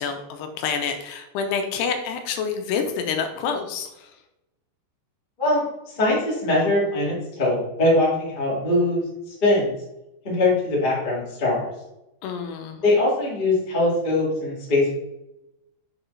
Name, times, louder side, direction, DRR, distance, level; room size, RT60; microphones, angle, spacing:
voice 1, 0.0-4.1 12.2-12.8, left 6 dB, 80° left, 6 dB, 2.6 m, -28 dB
voice 2, 5.9-9.0 9.4-9.7 10.2-11.6 12.8-14.9, left 2 dB, 40° left, -6 dB, 0.7 m, -21 dB
6.9 x 4.4 x 3.2 m, 0.90 s
omnidirectional pair, 4.8 m